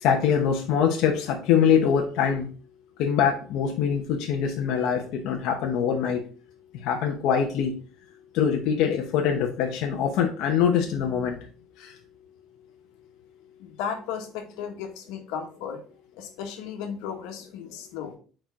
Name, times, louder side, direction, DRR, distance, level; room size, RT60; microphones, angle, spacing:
voice 1, 0.0-2.5 3.0-6.2 6.8-7.8 8.3-11.4 11.8-11.9, left 7 dB, 65° left, 1 dB, 0.9 m, -23 dB
voice 2, 13.6-15.8 16.2-18.2, left 7 dB, 90° left, 4 dB, 1.3 m, -35 dB
4.7 x 4.4 x 4.6 m, 0.39 s
cardioid pair, 165°, 0 cm